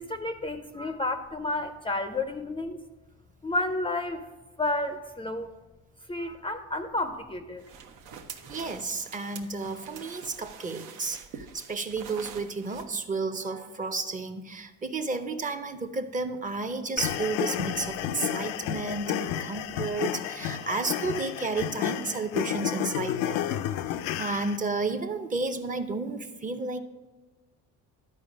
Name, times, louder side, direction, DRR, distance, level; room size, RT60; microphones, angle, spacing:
voice 1, 0.0-2.8 3.4-4.3 4.6-5.5 6.1-7.6, left 2 dB, 15° left, 8 dB, 0.4 m, -31 dB
sound 1, 7.6-12.9, right 7 dB, 80° right, 0.9 m, -45 dB
voice 2, 8.5-23.5 24.2-26.8, right 3 dB, 25° right, 9 dB, 0.7 m, -32 dB
sound 2, 17.0-24.6, left 11 dB, 85° left, 0.5 m, -31 dB
11.5 x 4.6 x 5.1 m, 1.2 s
cardioid pair, 100°, 32 cm